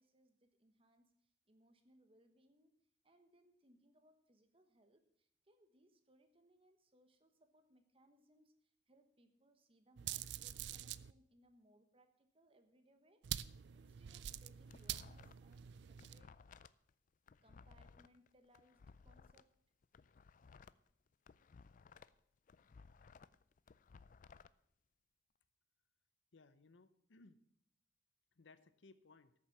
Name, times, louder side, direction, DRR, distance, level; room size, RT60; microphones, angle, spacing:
voice 1, 0.0-16.4 17.4-19.5, right 1 dB, 30° right, 8 dB, 1.2 m, -71 dB
sound 1, 10.0-11.1 13.2-16.2, right 11 dB, 65° right, 0.4 m, -46 dB
sound 2, 14.3-15.6 15.8-19.4 19.8-22.2 22.5-24.5, left 5 dB, 45° left, 0.4 m, -61 dB
voice 2, 26.3-27.4 28.4-29.3, left 3 dB, 80° left, 13 dB, 0.8 m, -63 dB
13.0 x 7.2 x 6.0 m, 0.70 s
head